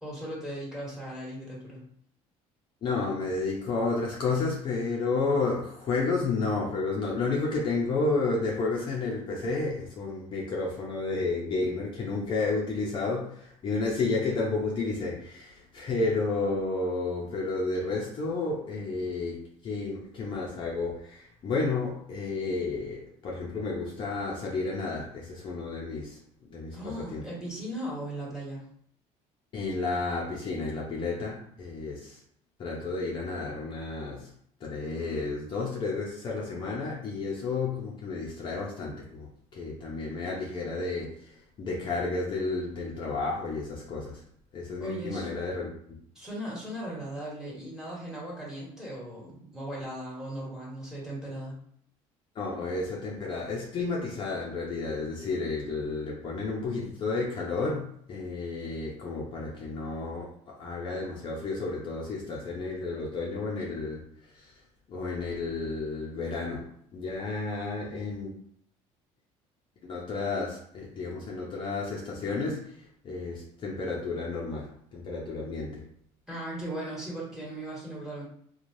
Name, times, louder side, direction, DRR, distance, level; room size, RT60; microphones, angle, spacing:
voice 1, 0.0-1.8 26.7-28.6 44.8-45.3 46.1-51.5 76.3-78.2, right 1 dB, 5° right, -6 dB, 1.3 m, -37 dB
voice 2, 2.8-26.2 26.5-27.2 29.5-32.2 32.6-34.3 34.6-39.3 39.5-44.2 44.5-45.7 52.4-64.0 64.3-64.5 64.9-66.7 66.9-68.3 69.9-72.8 73.0-75.8, left 3 dB, 40° left, -3 dB, 0.6 m, -31 dB
3.1 x 2.3 x 2.6 m, 0.65 s
cardioid pair, 130°, 13 cm